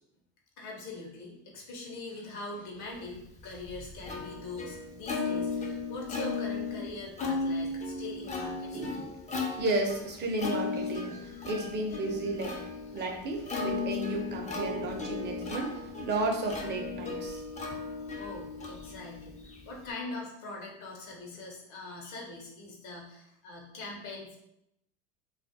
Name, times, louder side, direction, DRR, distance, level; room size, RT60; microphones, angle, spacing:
voice 1, 0.6-8.9 17.3-17.4 18.2-19.4 19.7-24.4, left 2 dB, 60° left, -1 dB, 0.8 m, -42 dB
Plucked string instrument, 3.2-19.9, left 4 dB, 20° left, 0.4 m, -36 dB
voice 2, 8.7-12.6 12.9-17.4, right 2 dB, 30° right, 2 dB, 0.6 m, -33 dB
2.4 x 2.1 x 2.6 m, 0.80 s
hypercardioid pair, 90°, 33 cm